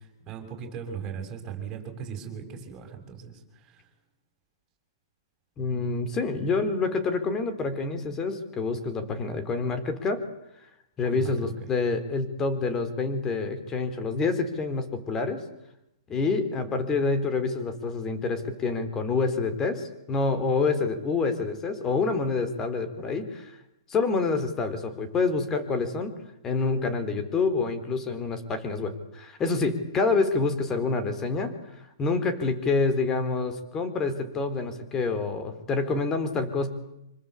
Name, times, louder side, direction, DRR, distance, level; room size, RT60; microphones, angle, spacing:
voice 1, 0.3-3.4 11.1-11.5, right 7 dB, 20° right, 3 dB, 7.4 m, -38 dB
voice 2, 5.6-10.2 11.0-15.4 16.1-23.5 23.9-26.1 26.4-31.5 32.0-36.7, left 4 dB, 20° left, 9 dB, 4.1 m, -27 dB
26.0 x 25.0 x 8.4 m, 0.84 s
hypercardioid pair, 150°, 2 cm